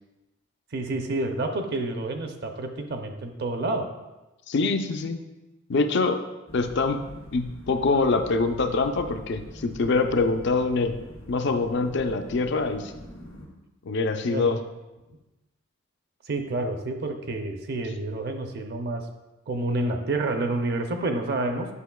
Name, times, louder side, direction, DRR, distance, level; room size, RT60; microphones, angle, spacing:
voice 1, 0.7-3.8 14.3-14.5 16.3-19.0 19.5-21.7, right 2 dB, 55° right, 5 dB, 0.6 m, -29 dB
voice 2, 4.5-5.2 5.7-6.2 6.5-7.1 7.3-11.0 11.3-12.9 13.9-14.6, left 3 dB, 60° left, 7 dB, 0.5 m, -24 dB
sound 1, 6.5-13.5, left 1 dB, 80° left, 1.6 m, -44 dB
8.3 x 5.5 x 2.3 m, 1.1 s
head